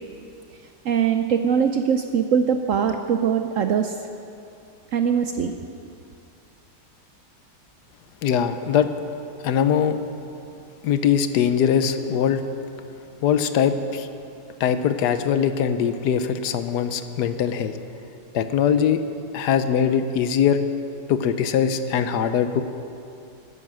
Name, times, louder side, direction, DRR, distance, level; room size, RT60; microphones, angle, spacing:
voice 1, 0.8-4.0 4.9-5.5, right 7 dB, 70° right, 7 dB, 0.8 m, -22 dB
voice 2, 8.2-8.9 9.4-10.0 10.8-12.4 13.2-14.1 14.6-17.7 18.3-19.0 19.3-20.6 21.1-22.6, left 8 dB, 75° left, 10 dB, 1.2 m, -21 dB
13.0 x 9.7 x 6.2 m, 2.5 s
omnidirectional pair, 1.8 m